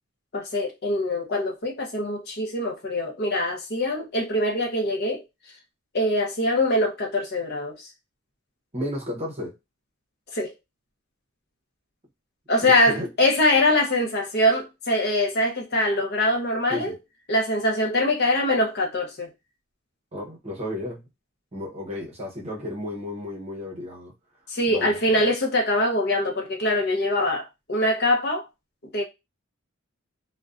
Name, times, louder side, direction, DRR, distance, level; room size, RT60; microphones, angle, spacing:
voice 1, 0.3-5.2 5.9-7.9 10.3-10.5 12.5-17.0 17.3-19.3 24.5-28.4 28.8-29.0, left 1 dB, 50° left, 0.6 m, -23 dB
voice 2, 8.7-9.5 12.6-13.1 16.7-16.9 20.1-21.0 21.5-24.1 24.7-25.0, left 1 dB, 30° right, 0.7 m, -33 dB
2.4 x 2.1 x 2.4 m
head